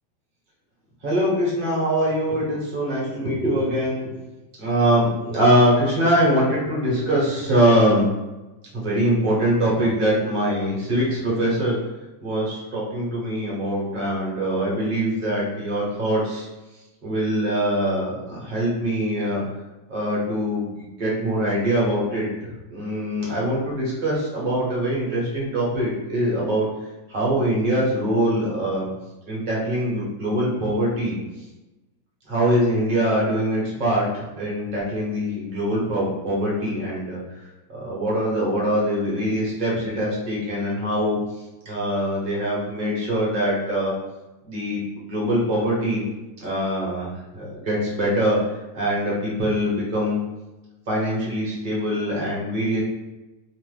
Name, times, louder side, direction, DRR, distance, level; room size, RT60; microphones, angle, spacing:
voice 1, 1.0-4.1 4.6-8.1 8.7-11.8 12.2-16.5 17.0-19.4 19.9-20.7 21.0-26.7 27.1-28.9 29.3-31.2 32.3-37.2 37.7-41.2 41.6-43.9 44.4-46.0 46.4-48.4 48.7-50.2 50.9-52.8, equal, 40° right, -5 dB, 0.8 m, -23 dB
3.0 x 2.0 x 3.2 m, 1.0 s
omnidirectional pair, 1.8 m